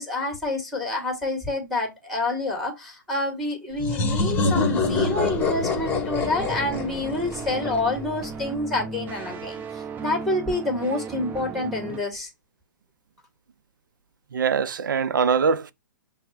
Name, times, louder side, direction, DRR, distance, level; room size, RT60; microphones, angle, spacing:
voice 1, 0.0-12.3, left 2 dB, ahead, 1.8 m, -28 dB
sound 1, 3.8-8.4, left 3 dB, 20° left, 1.2 m, -26 dB
sound 2, 6.2-12.0, right 5 dB, 15° right, 0.7 m, -36 dB
voice 2, 14.3-15.7, right 6 dB, 75° right, 0.4 m, -22 dB
5.7 x 2.1 x 4.1 m
hypercardioid pair, 125°, 11 cm